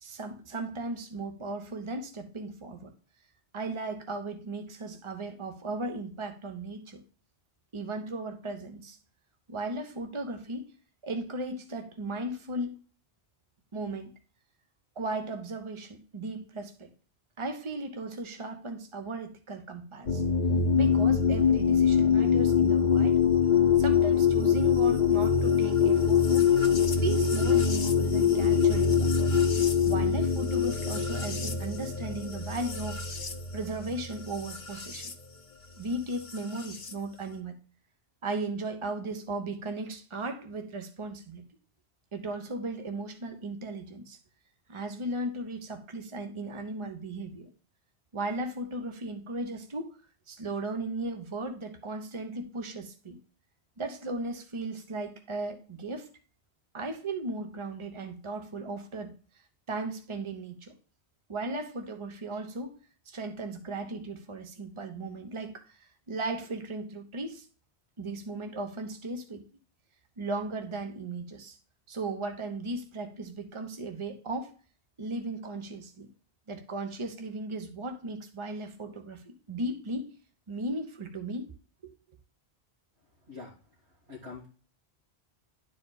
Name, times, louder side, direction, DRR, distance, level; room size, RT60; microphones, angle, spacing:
voice 1, 0.0-2.9 3.5-7.0 7.7-9.0 9.5-10.7 11.0-12.8 13.7-14.1 15.0-16.9 17.4-20.2 20.7-23.2 23.8-26.5 26.9-29.1 29.8-33.2 33.5-35.1 35.8-37.5 38.2-41.4 42.1-44.2 44.7-47.5 48.1-50.0 50.3-53.2 53.8-56.1 56.7-59.1 59.7-60.7 61.3-62.8 63.1-65.6 66.1-67.5 68.0-69.4 70.2-71.6 71.9-74.5 75.0-76.1 76.5-80.1 80.5-81.5 81.8-81.9, right 2 dB, 30° right, 6 dB, 1.0 m, -36 dB
sound 1, 20.1-35.1 36.3-36.9, left 6 dB, 50° left, 1.0 m, -24 dB
voice 2, 84.1-84.5, left 4 dB, 85° right, -6 dB, 2.3 m, -43 dB
11.0 x 4.8 x 2.3 m, 0.38 s
omnidirectional pair, 1.1 m